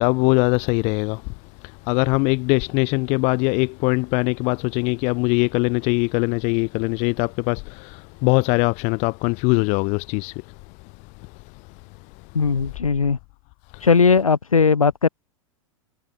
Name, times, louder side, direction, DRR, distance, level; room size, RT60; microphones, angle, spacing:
voice 1, 0.0-12.8 13.7-13.9, left 31 dB, 40° left, 2.9 m, -23 dB
voice 2, 12.3-13.2 13.8-15.1, left 5 dB, 80° left, 4.8 m, -18 dB
figure-of-eight pair, 100°, 17 cm